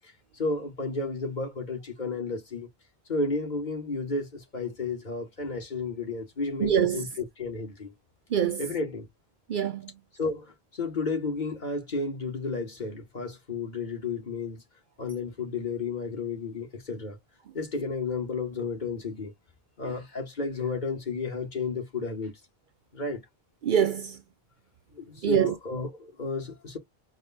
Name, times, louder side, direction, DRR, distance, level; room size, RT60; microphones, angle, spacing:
voice 1, 0.3-2.7 3.1-7.9 8.6-9.1 10.2-14.6 15.0-17.2 17.5-19.3 19.8-22.3 22.9-23.2 24.9-26.8, left 3 dB, 50° left, 1.7 m, -32 dB
voice 2, 6.6-7.1 8.3-8.7 9.5-10.0 23.6-24.2 25.2-25.5, right 8 dB, 60° right, 0.7 m, -25 dB
4.8 x 2.1 x 4.1 m
omnidirectional pair, 1.0 m